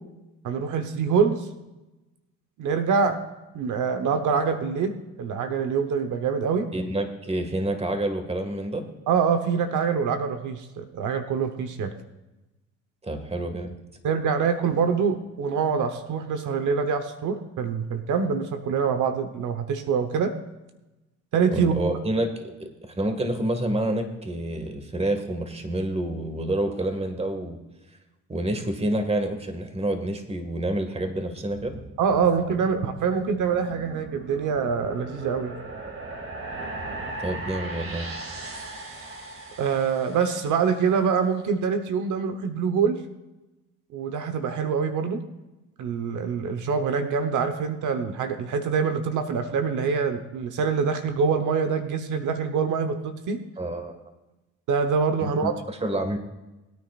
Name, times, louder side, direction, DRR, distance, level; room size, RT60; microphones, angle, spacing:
voice 1, 0.4-1.5 2.6-3.2 3.5-4.9 5.2-6.7 9.1-11.9 14.0-20.3 21.3-21.7 32.0-35.5 39.6-43.0 43.9-45.2 45.8-53.4 54.7-55.5, right 6 dB, 80° right, 7 dB, 1.1 m, -25 dB
voice 2, 6.7-8.8 13.0-13.8 21.5-22.3 22.6-27.6 28.3-31.8 37.2-38.1 53.6-53.9 55.2-56.2, right 1 dB, 20° right, 5 dB, 1.9 m, -28 dB
sound 1, 31.5-40.9, right 2 dB, 45° right, 2.3 m, -38 dB
21.5 x 9.6 x 2.5 m, 1.0 s
cardioid pair, 90°, 30 cm